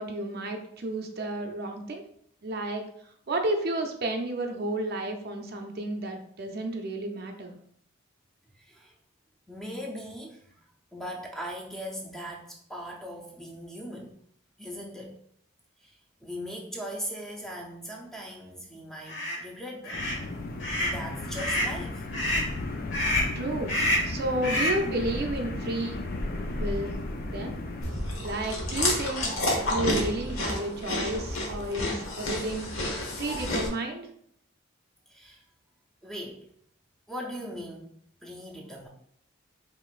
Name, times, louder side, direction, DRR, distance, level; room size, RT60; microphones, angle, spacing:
voice 1, 0.0-2.0 2.4-2.8 3.3-7.6 23.3-23.8 24.0-26.0 26.6-26.9 27.3-27.5 28.2-29.3 29.7-32.9 33.2-34.1, right 1 dB, 50° right, 4 dB, 0.5 m, -31 dB
voice 2, 8.5-8.9 9.5-10.4 10.9-14.2 14.6-15.2 15.8-15.9 16.2-20.0 20.7-22.0 35.1-35.4 36.0-36.4 37.1-37.9 38.2-38.9, equal, ahead, -2 dB, 0.6 m, -39 dB
sound 1, 19.1-19.4 19.8-20.2 20.6-21.0 21.4-21.8 22.1-22.5 22.9-23.3 23.7-24.1 24.4-24.8, left 1 dB, 65° left, 1.2 m, -27 dB
sound 2, 19.9-27.9, left 2 dB, 45° left, 0.4 m, -34 dB
Chewing mastication, 27.8-33.7, left 1 dB, 90° left, 1.0 m, -30 dB
4.9 x 3.0 x 2.4 m, 0.66 s
head